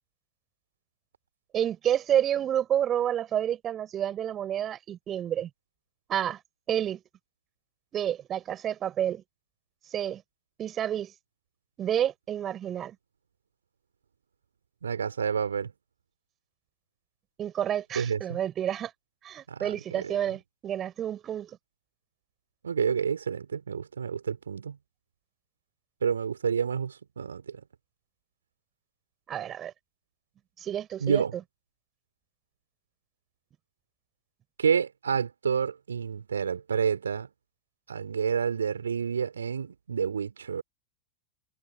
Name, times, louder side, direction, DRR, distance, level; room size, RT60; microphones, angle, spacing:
voice 1, 1.5-5.5 6.1-6.4 6.7-7.0 7.9-9.2 9.9-10.2 10.6-11.1 11.8-13.0 17.4-18.9 19.2-21.6 29.3-29.7 30.6-31.4, right 10 dB, 30° right, 5.5 m, -29 dB
voice 2, 14.8-15.7 17.9-18.4 19.5-20.1 22.6-24.8 26.0-27.6 31.0-31.3 34.6-37.3 37.9-40.6, right 6 dB, 70° right, 4.0 m, -29 dB
figure-of-eight pair, 90°, 0 cm